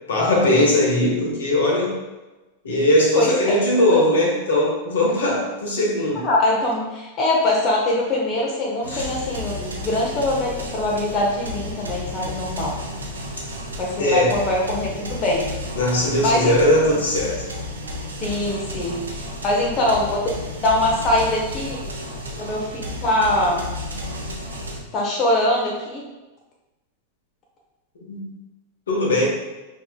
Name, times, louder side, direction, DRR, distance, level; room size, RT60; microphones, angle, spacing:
voice 1, 0.1-2.0 2.6-6.3 8.9-9.1 14.0-14.3 15.7-17.4 28.1-28.2 28.9-29.3, left 1 dB, 70° left, -2 dB, 1.0 m, -19 dB
voice 2, 3.1-4.0 6.1-12.7 13.8-15.5 16.2-16.6 18.2-20.2 20.6-21.9 22.4-23.6 24.9-26.1, left 1 dB, 35° left, -2 dB, 0.7 m, -23 dB
sound 1, 8.8-24.8, left 1 dB, 80° right, 0.6 m, -32 dB
5.5 x 2.8 x 2.3 m, 1.1 s
figure-of-eight pair, 90°, 0 cm